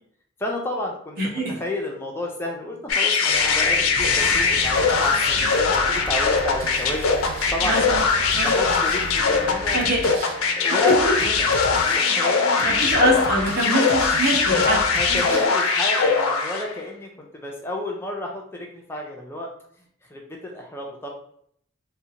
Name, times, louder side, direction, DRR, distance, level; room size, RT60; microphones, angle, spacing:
voice 1, 0.4-7.1 7.5-8.0 8.3-9.9 10.6-12.7 14.9-19.5 20.1-21.1, left 1 dB, 10° left, 0 dB, 0.3 m, -31 dB
voice 2, 1.2-1.5 7.6-8.0 8.3-8.5 9.7-10.0 10.8-11.1 12.6-14.8 15.1-15.2, right 1 dB, 45° right, -5 dB, 0.9 m, -23 dB
sound 1, 2.9-16.7, left 5 dB, 90° left, 0.4 m, -21 dB
sound 2, 3.3-15.5, right 2 dB, 70° right, 0.3 m, -35 dB
2.6 x 2.1 x 2.7 m, 0.66 s
head